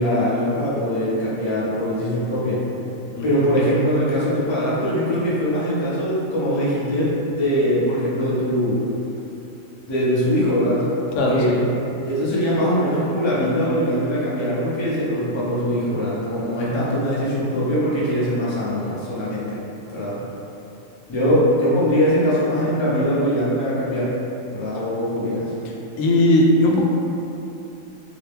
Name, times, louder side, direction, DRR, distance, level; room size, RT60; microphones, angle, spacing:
voice 1, 0.0-2.6 3.2-8.8 9.9-10.8 11.3-11.5 12.0-19.6 19.9-20.2 21.1-24.2 24.5-25.5, equal, 30° left, -8 dB, 0.6 m, -22 dB
voice 2, 11.1-11.6 26.0-26.8, left 1 dB, 70° left, -1 dB, 0.9 m, -18 dB
2.9 x 2.8 x 3.4 m, 2.9 s
omnidirectional pair, 1.4 m